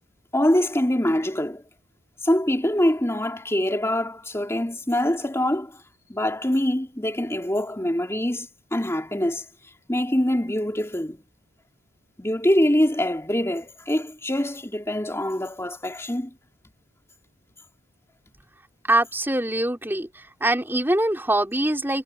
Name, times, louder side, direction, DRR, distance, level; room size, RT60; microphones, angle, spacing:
voice 1, 0.3-1.6 2.2-5.8 6.1-9.4 9.9-11.2 12.2-16.3, left 1 dB, 15° left, 2.9 m, -24 dB
voice 2, 18.9-20.1 20.4-22.0, right 1 dB, 10° right, 3.7 m, -23 dB
head